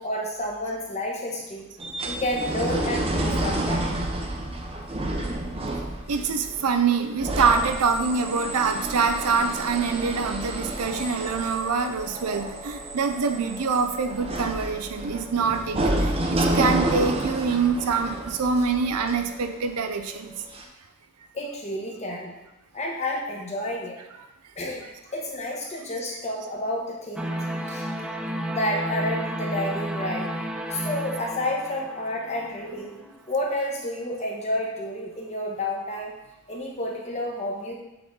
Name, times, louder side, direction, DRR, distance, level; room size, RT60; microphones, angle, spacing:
voice 1, 0.0-1.7 2.0-3.8 21.3-22.3 22.7-24.0 24.6-24.9 25.1-28.1 28.5-30.3 30.7-36.1 36.5-37.7, left 1 dB, 30° left, -2 dB, 1.2 m, -30 dB
sound 1, 1.8-20.0 20.5-20.6, right 1 dB, 25° right, 0.7 m, -29 dB
voice 2, 6.1-20.3, right 5 dB, 85° right, 7 dB, 0.6 m, -25 dB
sound 2, 27.2-33.2, equal, 5° right, 0.3 m, -32 dB
7.7 x 3.8 x 3.9 m, 0.94 s
head